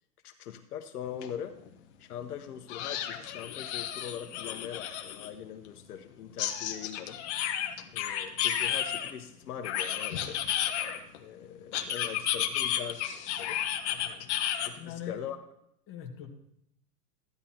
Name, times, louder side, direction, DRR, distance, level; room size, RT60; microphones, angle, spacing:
voice 1, 0.2-1.6 2.0-7.2 7.9-10.4 11.2-14.3 14.6-15.4, left 9 dB, 65° left, 6 dB, 1.1 m, -42 dB
sound 1, 1.2-1.3 1.7-1.8 2.7-5.3 6.4-9.1 9.6-11.2 11.7-14.7, left 10 dB, 45° left, 1.3 m, -32 dB
voice 2, 14.8-15.2 15.9-16.3, left 9 dB, 25° left, 1 dB, 1.7 m, -41 dB
15.0 x 10.5 x 3.0 m, 0.76 s
hypercardioid pair, 140°, 48 cm